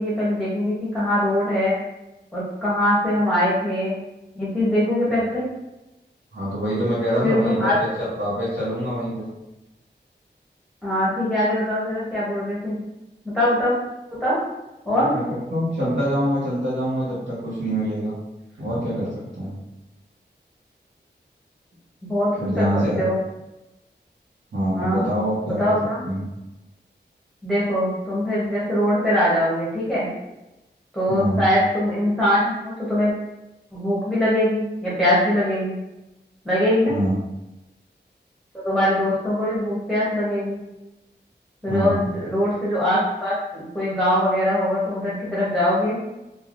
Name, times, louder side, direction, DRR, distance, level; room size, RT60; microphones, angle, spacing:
voice 1, 0.0-1.8 2.3-4.0 4.3-5.4 7.2-7.8 10.8-12.8 13.2-13.7 14.2-14.4 14.8-15.1 22.1-22.7 23.0-23.2 24.7-25.1 25.5-26.1 27.4-30.1 30.9-33.1 33.7-35.8 36.4-36.9 38.5-40.6 41.6-46.0, left 1 dB, ahead, -9 dB, 0.7 m, -22 dB
voice 2, 6.3-9.3 14.9-15.2 15.5-18.1 18.6-19.6 22.4-23.0 24.5-25.7 26.0-26.2 31.1-31.4 36.9-37.1 41.7-42.1, equal, 80° right, -10 dB, 0.9 m, -25 dB
3.2 x 2.1 x 2.4 m, 0.98 s
wide cardioid pair, 85°, 19 cm